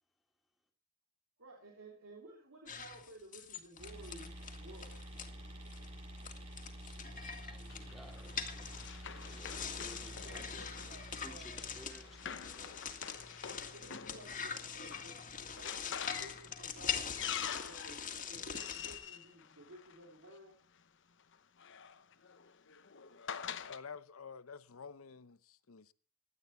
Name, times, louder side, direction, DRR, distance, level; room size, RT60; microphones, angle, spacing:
voice 1, 1.4-5.1 10.2-11.7 13.7-15.2 15.5-17.1 17.7-20.6, right 1 dB, 75° right, 3.0 m, -55 dB
sound 1, 2.7-5.3 5.7-5.9 6.2-19.0, left 7 dB, 40° left, 2.0 m, -43 dB
sound 2, 3.8-13.3, equal, 30° right, 7.7 m, -50 dB
voice 2, 6.8-10.7 11.2-12.8, equal, ahead, 2.5 m, -57 dB
Run, 7.7-20.3 21.3-23.8, left 8 dB, 60° left, 1.0 m, -47 dB
voice 3, 23.7-25.9, left 5 dB, 85° left, 0.8 m, -50 dB
16.5 x 12.0 x 4.3 m
head